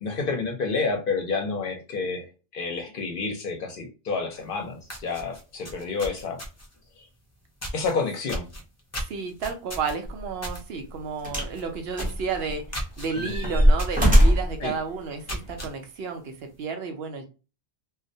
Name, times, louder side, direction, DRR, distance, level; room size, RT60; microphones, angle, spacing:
voice 1, 0.0-2.3 2.5-6.4 7.0-7.1 7.7-8.5 13.2-13.4 14.6-14.7, left 4 dB, 60° left, 3 dB, 0.7 m, -29 dB
sound 1, 4.4-4.5 4.8-6.8 7.6-7.9 8.3-10.6 11.0-11.2 11.5-11.6 11.9-12.2 12.7-13.1 13.8-14.0 14.5-14.6 15.1-15.7, equal, 25° left, 0.4 m, -35 dB
voice 2, 8.9-12.7 13.0-17.3, right 5 dB, 70° right, 5 dB, 0.8 m, -32 dB
sound 2, 10.1-10.2 11.2-11.6 12.0-12.7 13.1-14.6 15.5-15.6, equal, 10° right, 0.7 m, -20 dB
2.3 x 2.1 x 2.6 m, 0.33 s
omnidirectional pair, 1.1 m